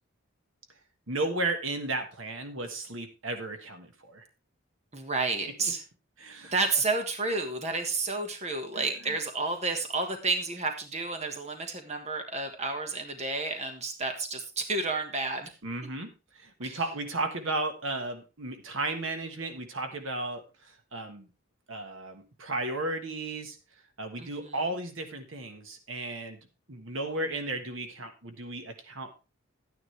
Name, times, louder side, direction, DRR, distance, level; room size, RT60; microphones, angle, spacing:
voice 1, 1.1-4.3 6.2-6.5 8.7-9.1 15.6-21.3 21.7-23.6 24.0-26.4 26.7-29.2, right 2 dB, 65° right, 6 dB, 1.5 m, -34 dB
voice 2, 4.9-5.8 6.5-15.5 16.6-16.8 24.2-24.6, right 3 dB, 30° right, 5 dB, 1.5 m, -31 dB
12.0 x 9.5 x 3.3 m, 0.30 s
head